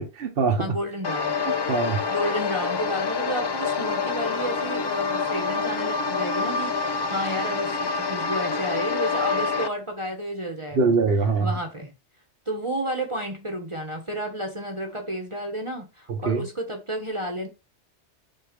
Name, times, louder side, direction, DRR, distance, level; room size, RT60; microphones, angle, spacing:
voice 1, 0.0-0.8 1.7-2.0 10.7-11.5 16.3-16.4, right 4 dB, 60° right, 1.1 m, -22 dB
voice 2, 0.6-1.4 2.1-11.0 11.4-11.9 12.5-17.5, right 1 dB, 25° right, 1.1 m, -31 dB
sound 1, 1.0-9.7, left 4 dB, 45° left, 0.3 m, -27 dB
7.5 x 2.8 x 5.2 m
omnidirectional pair, 1.2 m